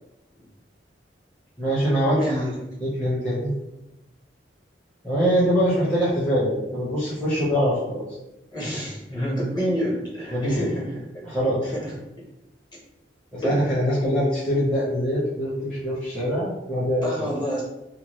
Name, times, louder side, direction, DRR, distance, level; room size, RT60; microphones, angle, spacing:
voice 1, 1.6-2.5 2.8-3.5 5.0-8.1 10.3-10.7 11.2-11.7 13.3-17.3, equal, 5° left, -11 dB, 0.7 m, -23 dB
voice 2, 2.1-2.6 8.5-11.0 11.6-12.0 13.4-13.8 17.0-17.6, equal, 25° left, -6 dB, 1.0 m, -28 dB
2.9 x 2.2 x 3.0 m, 0.91 s
head